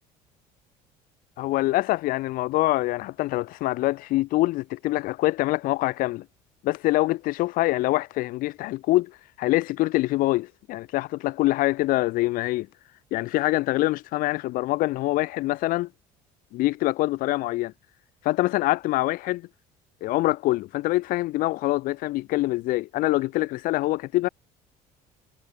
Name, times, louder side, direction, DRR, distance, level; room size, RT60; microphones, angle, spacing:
voice 1, 1.4-6.3 6.6-12.7 13.1-15.9 16.5-17.7 18.2-19.5 20.0-24.3, left 18 dB, 65° left, 0.5 m, -25 dB
cardioid pair, 105°, 16 cm